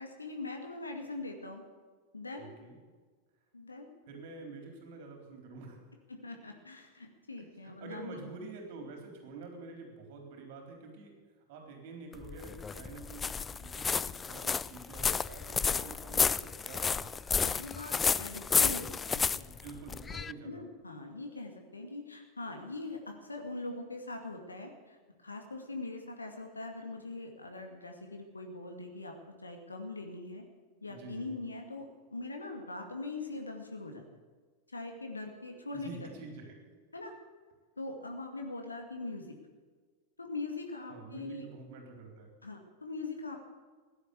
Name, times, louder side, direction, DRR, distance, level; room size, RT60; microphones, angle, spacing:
voice 1, 0.0-1.6 2.1-2.5 3.5-3.9 6.1-8.2 15.7-15.8 17.4-19.5 20.4-30.4 30.8-34.0 34.7-36.1 36.9-37.1 37.8-39.3 40.2-41.5 42.4-43.4, left 3 dB, 80° left, 3 dB, 2.1 m, -42 dB
voice 2, 2.4-2.8 4.1-5.8 7.4-11.1 11.5-17.2 19.5-20.7 30.9-31.4 35.7-36.7 40.9-42.3, right 3 dB, 50° right, 3 dB, 4.0 m, -47 dB
sound 1, 12.1-20.3, left 5 dB, 15° left, 0.4 m, -31 dB
16.0 x 10.5 x 8.1 m, 1.5 s
figure-of-eight pair, 90°, 0 cm